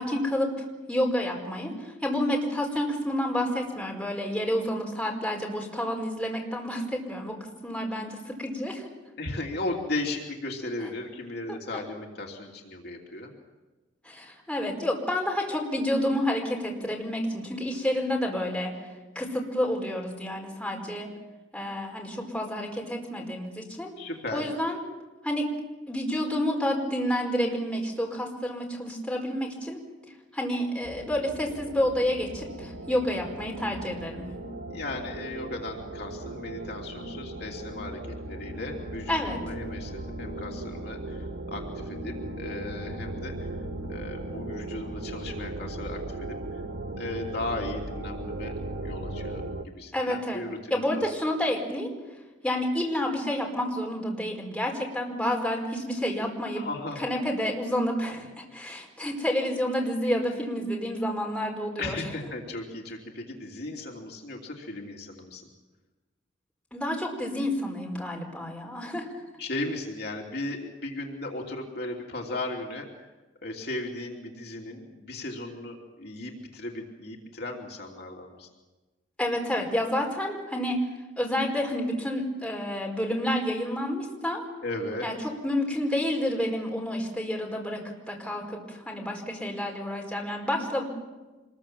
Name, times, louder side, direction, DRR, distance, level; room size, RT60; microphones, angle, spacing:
voice 1, 0.0-8.9 14.0-18.7 19.1-21.1 21.5-23.9 24.3-24.8 25.2-25.5 25.9-29.8 30.3-34.3 39.1-39.4 49.9-50.4 50.7-51.9 52.4-56.6 57.0-62.0 66.7-69.1 79.2-80.8 81.2-84.4 85.0-85.1 85.4-90.8, left 1 dB, 5° left, -1 dB, 4.8 m, -29 dB
voice 2, 9.2-13.3 24.0-24.4 34.7-43.6 43.9-46.6 46.9-51.2 56.5-57.1 61.8-65.5 69.4-73.1 73.4-78.5 84.6-85.1, left 2 dB, 55° left, 0 dB, 3.0 m, -36 dB
sound 1, 30.8-49.6, right 2 dB, 85° right, 1.6 m, -37 dB
26.5 x 21.5 x 7.6 m, 1.2 s
head